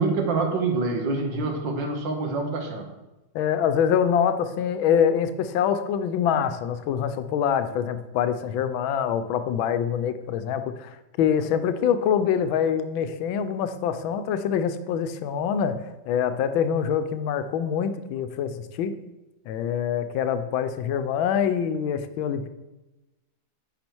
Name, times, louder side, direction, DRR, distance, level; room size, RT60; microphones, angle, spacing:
voice 1, 0.0-2.9, right 3 dB, 70° right, 3 dB, 1.9 m, -26 dB
voice 2, 3.3-19.0 19.5-22.5, left 8 dB, 85° left, 10 dB, 1.4 m, -25 dB
9.5 x 4.9 x 4.5 m, 1.0 s
omnidirectional pair, 2.1 m